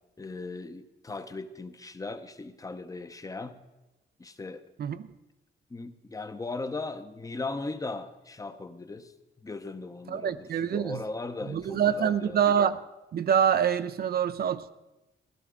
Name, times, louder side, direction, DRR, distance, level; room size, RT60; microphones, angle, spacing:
voice 1, 0.2-3.6 4.2-4.6 5.7-9.1 9.4-12.5, left 3 dB, 20° left, 10 dB, 0.7 m, -38 dB
voice 2, 10.1-11.0 11.5-12.8 13.1-14.7, right 8 dB, 55° right, 12 dB, 0.5 m, -25 dB
15.5 x 12.0 x 3.7 m, 1.0 s
cardioid pair, 110°, 19 cm